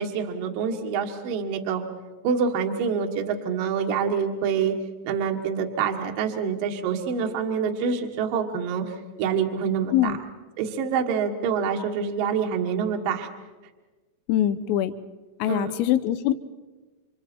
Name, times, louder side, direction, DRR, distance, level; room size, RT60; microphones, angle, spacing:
voice 1, 0.0-1.8 2.2-4.7 5.0-10.2 10.6-13.3 15.5-15.7, right 6 dB, 65° right, 2 dB, 2.4 m, -26 dB
voice 2, 14.3-14.9 15.4-16.3, left 12 dB, 80° left, 12 dB, 3.5 m, -23 dB
29.5 x 26.0 x 4.5 m, 1.2 s
omnidirectional pair, 6.0 m